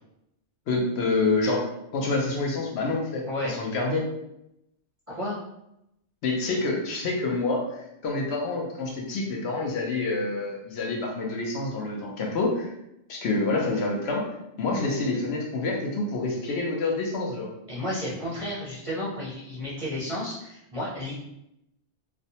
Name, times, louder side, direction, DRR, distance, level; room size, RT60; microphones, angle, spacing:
voice 1, 0.7-4.1 6.2-12.7 13.1-14.3 14.6-17.5, left 3 dB, 70° left, -1 dB, 0.8 m, -27 dB
voice 2, 17.7-21.1, left 1 dB, 40° right, -8 dB, 0.5 m, -32 dB
2.5 x 2.1 x 2.7 m, 0.83 s
omnidirectional pair, 1.2 m